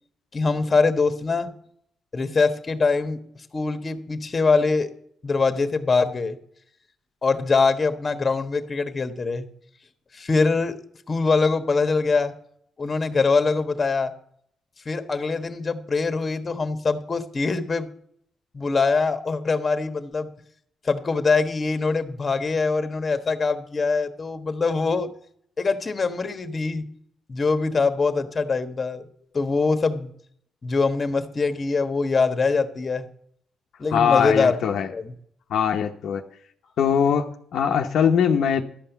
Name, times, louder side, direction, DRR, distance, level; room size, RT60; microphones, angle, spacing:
voice 1, 0.3-1.5 2.1-3.2 3.5-4.9 5.2-6.4 7.2-9.5 10.1-10.8 11.1-12.3 12.8-14.1 14.8-17.9 18.5-20.3 20.8-25.1 25.6-26.8 27.3-29.0 29.3-30.1 30.6-33.1 33.8-34.6 34.9-35.1, left 4 dB, 35° left, 9 dB, 1.3 m, -23 dB
voice 2, 33.9-34.9 35.5-36.2 36.8-38.6, left 7 dB, 70° left, 3 dB, 0.8 m, -21 dB
12.5 x 5.6 x 8.1 m, 0.65 s
cardioid pair, 75°, 0 cm